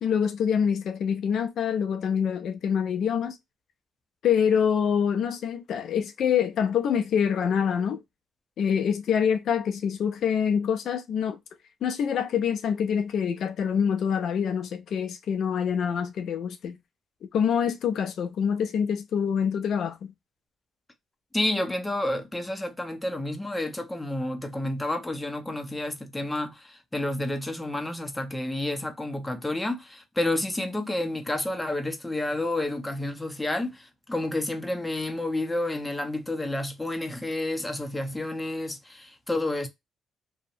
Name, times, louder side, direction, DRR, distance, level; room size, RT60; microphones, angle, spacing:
voice 1, 0.0-3.4 4.2-8.0 8.6-11.4 11.8-16.8 17.3-20.1, left 7 dB, 65° left, 0.4 m, -25 dB
voice 2, 21.3-39.7, left 1 dB, 10° left, 0.6 m, -30 dB
2.6 x 2.1 x 2.6 m
cardioid pair, 90°, 0 cm